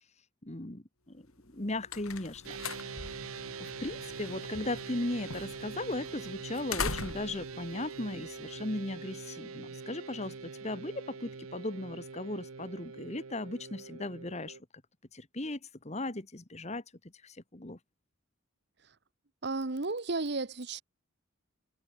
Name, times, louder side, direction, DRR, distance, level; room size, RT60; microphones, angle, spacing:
voice 1, 0.4-1.2 1.5-3.0 3.6-14.6 15.1-15.6 15.8-16.8 17.2-17.8, left 2 dB, 30° left, 1.5 m, -37 dB
sound 1, 1.4-8.9, left 5 dB, 85° left, 5.1 m, -42 dB
sound 2, 2.4-14.6, right 5 dB, 80° right, 0.9 m, -44 dB
voice 2, 19.4-20.8, right 3 dB, 50° right, 1.1 m, -33 dB
head